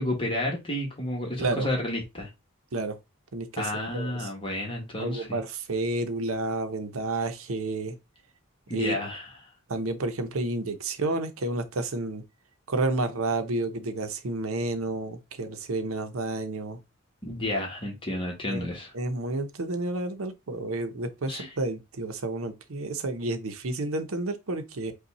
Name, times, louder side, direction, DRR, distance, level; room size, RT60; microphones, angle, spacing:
voice 1, 0.0-2.3 3.6-5.4 8.7-9.3 17.2-18.9 21.3-21.5, left 1 dB, 25° left, 1.2 m, -31 dB
voice 2, 3.3-4.3 5.0-8.0 8.7-9.0 9.7-12.2 12.7-16.8 18.5-18.7 18.9-24.9, right 2 dB, 80° right, 0.8 m, -30 dB
5.4 x 2.3 x 4.1 m
head